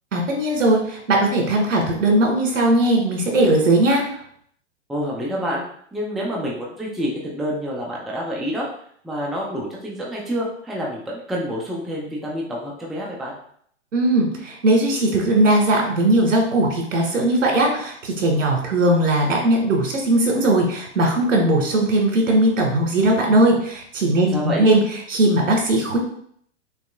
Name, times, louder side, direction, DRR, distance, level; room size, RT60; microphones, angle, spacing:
voice 1, 0.1-4.0 13.9-24.8 25.1-26.0, right 1 dB, 80° right, 1 dB, 1.7 m, -19 dB
voice 2, 4.9-5.6 5.9-8.7 9.0-13.3 24.3-24.7, equal, ahead, -3 dB, 0.4 m, -27 dB
6.1 x 3.1 x 2.3 m, 0.64 s
hypercardioid pair, 125°, 37 cm